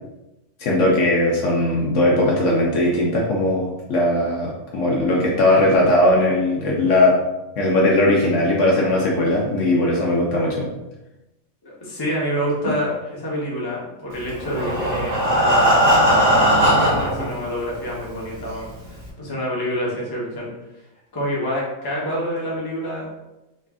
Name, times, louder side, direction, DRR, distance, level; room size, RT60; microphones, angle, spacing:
voice 1, 0.6-7.1 7.6-10.7, left 1 dB, 65° left, -3 dB, 0.9 m, -19 dB
voice 2, 11.6-15.9 16.7-18.7 19.2-20.5 21.1-23.1, equal, 20° left, -5 dB, 0.7 m, -27 dB
Breathing, 14.3-17.3 18.0-18.1 18.5-18.6 19.0-19.1, equal, 35° right, 0.8 m, -17 dB
3.2 x 2.5 x 3.5 m, 0.98 s
omnidirectional pair, 1.5 m